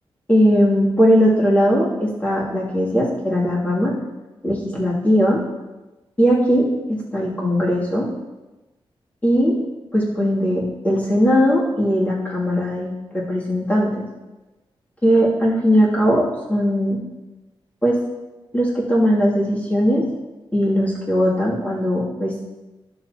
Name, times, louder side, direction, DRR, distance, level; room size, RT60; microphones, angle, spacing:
voice 1, 0.3-3.9 4.4-5.4 6.2-8.1 9.2-9.5 9.9-14.0 15.0-16.2 16.5-17.0 17.8-18.0 18.5-20.0 20.5-22.3, equal, 15° left, -6 dB, 2.8 m, -19 dB
12.0 x 7.1 x 3.0 m, 1.1 s
wide cardioid pair, 105°, 9 cm